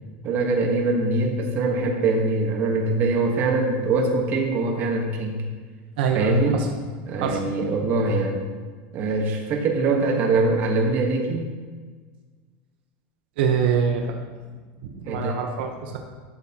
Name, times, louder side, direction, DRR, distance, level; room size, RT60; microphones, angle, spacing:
voice 1, 0.2-5.4 6.1-6.6 7.1-8.5 8.9-11.4 15.0-15.4, right 3 dB, 35° right, 1 dB, 1.3 m, -23 dB
voice 2, 6.0-6.7 7.2-7.4 13.4-14.1 14.8-16.0, right 7 dB, 70° right, 3 dB, 1.0 m, -24 dB
12.5 x 6.5 x 2.9 m, 1.5 s
supercardioid pair, 155°, 6 cm